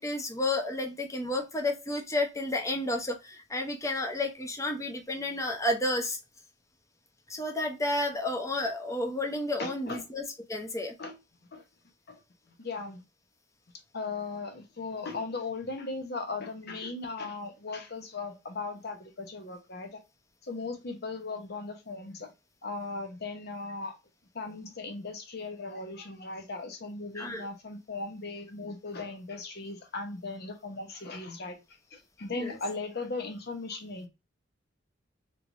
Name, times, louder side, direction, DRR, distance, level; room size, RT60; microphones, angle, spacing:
voice 1, 0.0-6.2 7.3-10.9 27.1-27.5 32.3-32.6, left 1 dB, 15° left, 0.7 m, -31 dB
voice 2, 9.6-10.0 11.0-11.2 11.5-11.6 12.1-12.2 12.6-13.0 13.9-20.0 20.4-22.3 22.6-23.9 24.3-31.6 31.9-34.1, left 3 dB, 60° left, 0.8 m, -38 dB
3.3 x 3.0 x 2.5 m
head